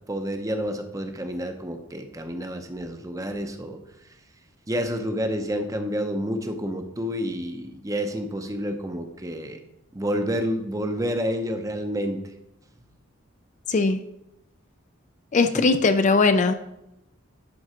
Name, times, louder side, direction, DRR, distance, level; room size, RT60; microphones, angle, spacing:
voice 1, 0.1-3.8 4.7-9.6 9.9-12.2 15.5-15.6, equal, 15° right, 6 dB, 0.7 m, -29 dB
voice 2, 13.7-14.0 15.3-16.5, left 3 dB, 35° left, 9 dB, 0.4 m, -19 dB
10.5 x 3.9 x 5.0 m, 0.87 s
head